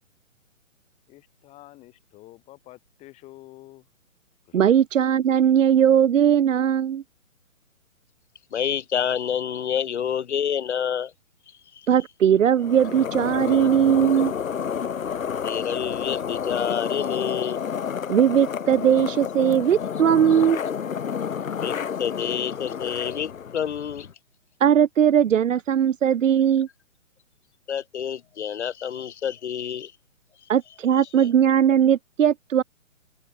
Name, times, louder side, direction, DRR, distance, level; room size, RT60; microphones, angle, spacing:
voice 1, 1.1-3.9 4.5-4.6, left 17 dB, 15° left, 6.8 m, -48 dB
voice 2, 4.5-7.0 11.9-14.3 18.1-20.6 24.6-26.7 30.5-32.6, right 9 dB, 70° right, 0.9 m, -19 dB
voice 3, 8.5-11.1 15.4-17.6 21.6-24.1 27.7-29.9, left 8 dB, 55° left, 1.6 m, -28 dB
sound 1, 12.6-24.1, left 7 dB, 75° left, 1.6 m, -30 dB
hypercardioid pair, 160°, 40 cm